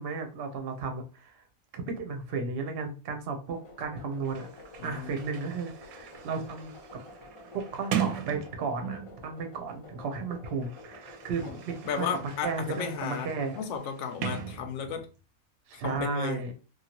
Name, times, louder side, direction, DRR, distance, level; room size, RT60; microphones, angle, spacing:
voice 1, 0.0-1.4 1.7-4.5 4.8-6.7 7.7-13.6 15.7-16.5, right 4 dB, 55° right, 0.8 m, -34 dB
sound 1, 3.5-13.8, left 2 dB, 40° left, 0.5 m, -50 dB
Sliding door, 3.9-4.0 4.2-9.3 10.2-15.2, right 9 dB, 85° right, 1.0 m, -39 dB
voice 2, 4.8-5.1 11.4-11.6 11.9-13.3 13.6-15.1 15.8-16.4, left 6 dB, 65° left, 0.8 m, -34 dB
3.0 x 2.4 x 2.8 m
omnidirectional pair, 1.5 m